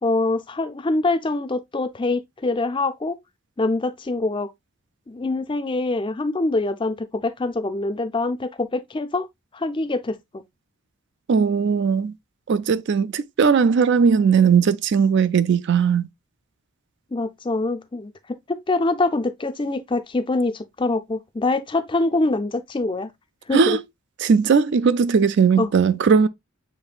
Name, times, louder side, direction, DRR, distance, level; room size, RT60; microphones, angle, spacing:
voice 1, 0.0-3.2 3.6-4.5 5.1-9.3 9.5-10.4 17.1-18.1 18.5-23.1 23.5-23.8 25.6-25.7, left 2 dB, 20° left, 0.4 m, -24 dB
voice 2, 11.3-12.1 12.5-16.1 23.5-23.8 24.2-26.3, right 6 dB, 55° right, 0.4 m, -18 dB
6.8 x 3.1 x 2.3 m
head